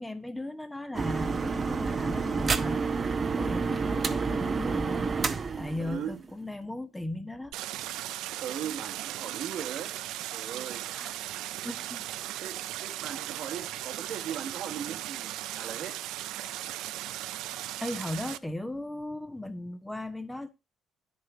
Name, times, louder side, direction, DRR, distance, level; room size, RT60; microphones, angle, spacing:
voice 1, 0.0-5.1 5.6-7.5 10.9-11.1 11.6-12.1 17.8-20.5, left 1 dB, 10° left, 1.0 m, -37 dB
sound 1, 0.9-6.4, right 4 dB, 35° right, 0.8 m, -29 dB
voice 2, 5.8-6.2 8.4-10.9 12.4-16.0, right 8 dB, 65° right, 1.4 m, -39 dB
Stream, 7.5-18.4, right 14 dB, 85° right, 0.4 m, -37 dB
9.8 x 3.8 x 7.1 m
cardioid pair, 95°, 0 cm